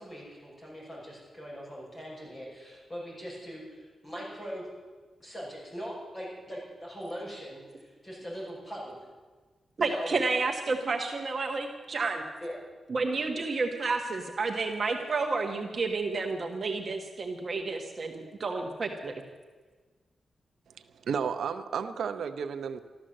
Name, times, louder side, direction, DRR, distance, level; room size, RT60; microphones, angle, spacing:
voice 1, 0.0-4.7 5.2-9.1 9.8-10.1 12.4-12.6, equal, 20° left, -5 dB, 6.3 m, -41 dB
voice 2, 9.8-12.2 12.9-19.1, right 3 dB, 40° right, 3 dB, 1.3 m, -30 dB
voice 3, 20.7-22.8, right 6 dB, 90° right, 9 dB, 0.8 m, -33 dB
14.0 x 13.0 x 7.7 m, 1.4 s
wide cardioid pair, 175°, 0 cm